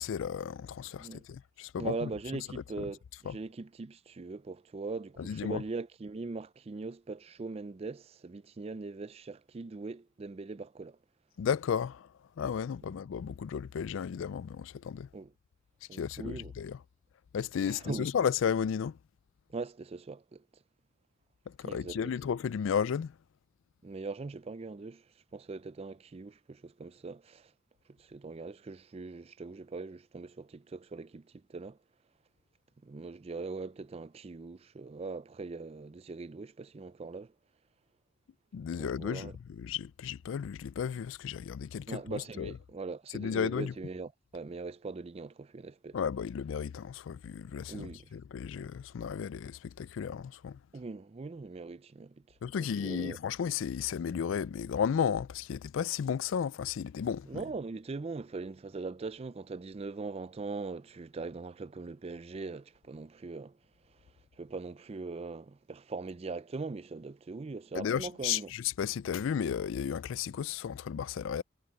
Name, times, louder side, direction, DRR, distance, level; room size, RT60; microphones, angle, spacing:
voice 1, 0.0-2.1 2.8-2.9 3.3-3.4 5.2-5.6 11.4-12.1 12.4-15.1 15.9-16.8 17.3-19.0 21.5-23.1 38.5-42.5 43.1-43.7 45.9-50.6 52.4-57.4 67.7-71.4, left 7 dB, 70° left, 0.3 m, -34 dB
voice 2, 1.8-11.0 15.1-15.3 15.9-16.5 17.7-18.1 19.5-20.4 21.6-22.1 23.8-25.0 25.3-27.5 28.0-31.8 32.8-37.3 38.8-39.3 41.9-46.0 47.7-48.1 50.7-52.2 52.6-53.2 57.3-63.5 64.4-68.5, right 3 dB, 30° right, 0.4 m, -41 dB
head